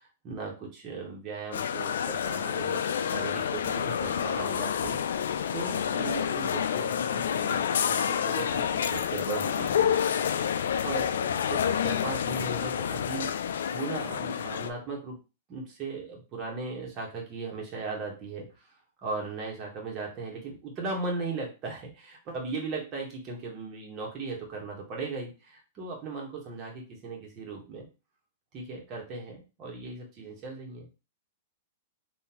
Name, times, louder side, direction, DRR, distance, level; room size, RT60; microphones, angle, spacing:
voice 1, 0.0-5.3 5.5-10.2 10.8-15.2 15.5-18.4 19.0-27.9 28.5-30.9, right 3 dB, 30° right, -1 dB, 1.3 m, -37 dB
sound 1, 1.5-14.7, left 8 dB, 85° left, 0.3 m, -29 dB
3.8 x 2.6 x 2.9 m, 0.30 s
hypercardioid pair, 145°, 0 cm